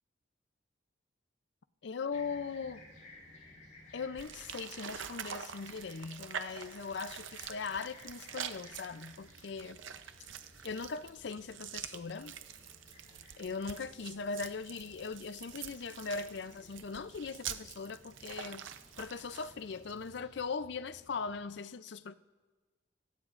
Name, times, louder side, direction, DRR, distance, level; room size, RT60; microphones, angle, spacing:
voice 1, 1.8-2.8 3.9-9.8 10.6-12.4 13.4-18.7 19.0-22.2, left 5 dB, 65° left, 0.5 m, -40 dB
Fixed-wing aircraft airplane, 2.1-21.5, left 2 dB, 40° left, 5.2 m, -59 dB
sound 1, 4.2-20.2, right 8 dB, 90° right, 0.7 m, -46 dB
25.5 x 16.5 x 2.5 m
head